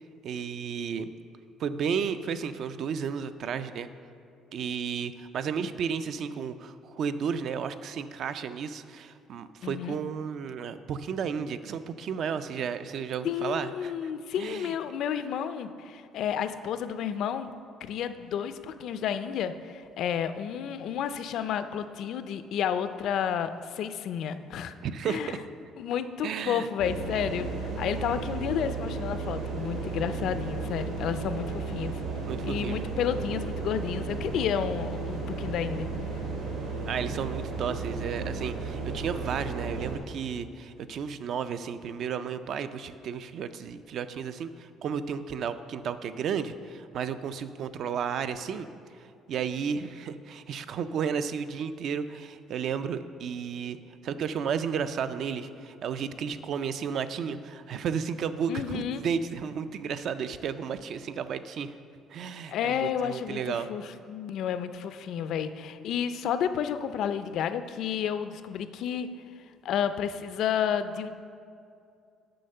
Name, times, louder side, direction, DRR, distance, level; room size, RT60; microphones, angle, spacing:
voice 1, 0.2-1.1 1.6-3.9 4.5-14.1 14.4-14.7 24.8-25.4 26.2-26.7 32.2-32.8 36.8-48.7 48.9-53.8 54.0-61.7 62.1-63.7, right 7 dB, 50° right, 11 dB, 0.3 m, -33 dB
voice 2, 9.6-10.0 13.2-17.5 17.8-24.7 25.0-25.4 25.8-31.9 32.4-35.9 58.5-59.0 62.5-69.1 69.6-71.1, left 8 dB, 55° left, 11 dB, 0.4 m, -31 dB
sound 1, 26.8-40.0, right 4 dB, 70° right, 2.2 m, -34 dB
7.7 x 5.5 x 6.5 m, 2.5 s
cardioid pair, 170°, 0 cm